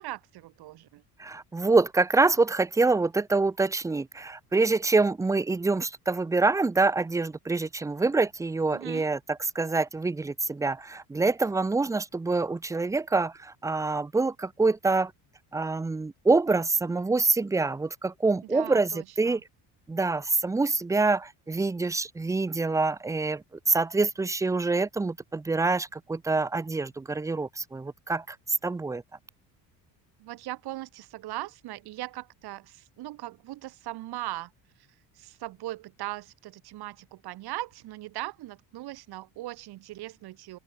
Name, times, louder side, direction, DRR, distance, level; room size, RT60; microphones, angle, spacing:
voice 1, 0.0-1.0 8.7-9.1 18.4-19.4 30.2-34.5 35.1-40.6, right 16 dB, 65° right, 3.3 m, -39 dB
voice 2, 1.2-9.2 9.5-15.1 15.5-18.9 19.2-19.4 19.9-28.4 28.6-29.0, right 3 dB, 10° right, 0.5 m, -26 dB
open air
cardioid pair, 150°, 42 cm